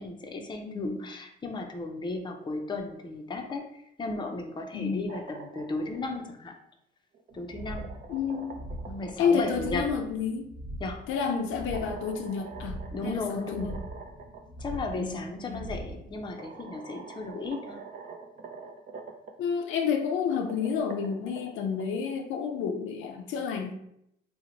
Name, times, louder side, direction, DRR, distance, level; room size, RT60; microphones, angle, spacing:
voice 1, 0.0-6.5 7.3-8.0 8.9-9.9 10.8-11.0 12.9-13.8 14.6-17.8, left 2 dB, 25° left, 3 dB, 0.5 m, -35 dB
voice 2, 0.6-1.0 4.7-5.1 8.1-8.6 9.2-10.5 11.1-12.8 13.0-13.8 14.9-15.7 19.4-23.7, left 6 dB, 90° left, 4 dB, 0.5 m, -30 dB
sound 1, 4.9-6.0 7.1-10.0 11.6-14.4 14.7-14.8 15.9-16.0 16.4-19.3 20.1-21.8, right 5 dB, 45° right, 0.5 m, -45 dB
sound 2, 7.3-16.3, equal, 75° right, 1.2 m, -42 dB
2.9 x 2.1 x 3.8 m, 0.77 s
cardioid pair, 90°, 20 cm